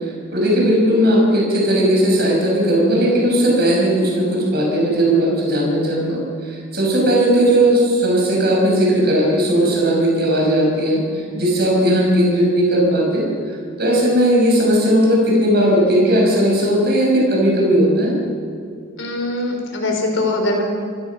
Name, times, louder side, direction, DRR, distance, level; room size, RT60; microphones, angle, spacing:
voice 1, 0.3-11.0 11.3-13.2 13.8-18.2, right 1 dB, 50° right, -2 dB, 6.0 m, -16 dB
voice 2, 19.0-20.6, left 2 dB, 70° left, 2 dB, 5.0 m, -22 dB
27.0 x 17.0 x 5.9 m, 2.4 s
head